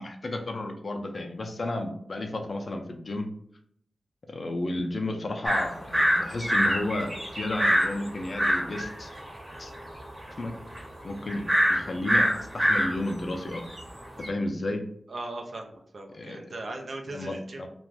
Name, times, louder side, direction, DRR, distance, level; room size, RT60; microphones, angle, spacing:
voice 1, 0.0-3.3 4.3-9.1 9.6-9.7 10.4-10.5 11.0-13.7 14.2-14.9 16.1-16.5 17.1-17.7, left 2 dB, 50° left, 4 dB, 0.5 m, -32 dB
sound 1, 5.4-14.3, equal, 25° right, 0.9 m, -26 dB
voice 2, 15.1-17.6, right 2 dB, 65° right, 1 dB, 0.4 m, -38 dB
2.5 x 2.3 x 3.2 m, 0.67 s
wide cardioid pair, 95°, 0 cm